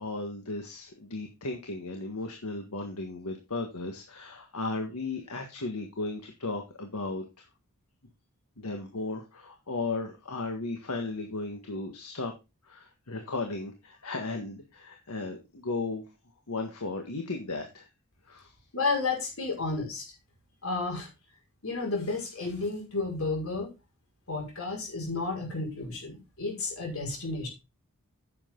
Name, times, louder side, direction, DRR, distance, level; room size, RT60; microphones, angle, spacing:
voice 1, 0.0-7.5 8.6-12.3 12.6-16.0 16.5-17.9 18.2-18.5, left 3 dB, 80° left, 4 dB, 1.6 m, -35 dB
voice 2, 18.7-20.1 20.6-21.1 21.6-23.7 24.3-27.5, left 3 dB, 65° left, -1 dB, 5.4 m, -32 dB
10.0 x 7.5 x 3.8 m, 0.26 s
head